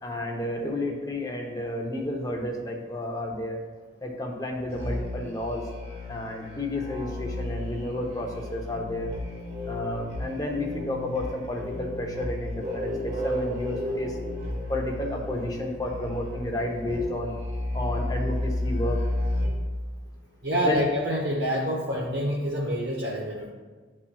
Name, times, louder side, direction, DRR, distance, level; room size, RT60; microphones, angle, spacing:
voice 1, 0.0-3.6 4.0-5.7 6.1-9.1 9.6-14.2 14.7-17.3 17.7-19.1 20.6-20.8, left 1 dB, 20° left, 1 dB, 0.7 m, -31 dB
Musical instrument, 4.7-19.7, left 1 dB, 35° right, 1.2 m, -32 dB
voice 2, 20.4-23.5, equal, 55° right, -4 dB, 0.8 m, -27 dB
11.0 x 4.3 x 2.3 m, 1.4 s
head